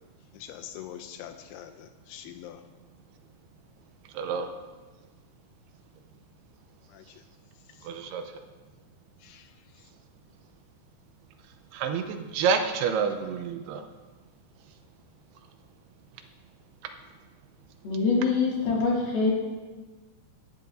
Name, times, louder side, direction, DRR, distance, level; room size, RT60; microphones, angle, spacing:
voice 1, 0.3-2.6 6.9-7.0 9.2-9.4, left 10 dB, 80° left, 8 dB, 2.5 m, -43 dB
voice 2, 4.1-4.5 7.8-8.2 11.7-13.8, right 6 dB, 85° right, 7 dB, 2.7 m, -28 dB
voice 3, 17.8-19.3, left 4 dB, 65° left, -3 dB, 3.9 m, -24 dB
16.5 x 11.0 x 2.6 m, 1.3 s
omnidirectional pair, 4.8 m